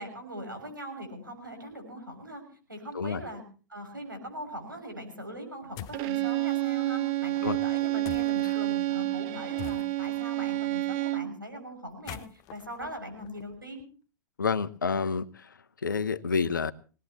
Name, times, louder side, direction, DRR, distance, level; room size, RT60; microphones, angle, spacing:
voice 1, 0.0-2.4 2.7-3.4 3.7-13.8, equal, 85° right, 6.6 m, -41 dB
sound 1, 5.8-6.1 8.0-8.6 9.6-10.2 11.9-13.8, left 15 dB, 35° left, 0.7 m, -44 dB
Bowed string instrument, 5.9-11.4, right 17 dB, 40° right, 0.9 m, -29 dB
voice 2, 14.4-16.7, left 5 dB, 75° left, 0.9 m, -29 dB
23.0 x 18.5 x 2.9 m
figure-of-eight pair, 95°, 11 cm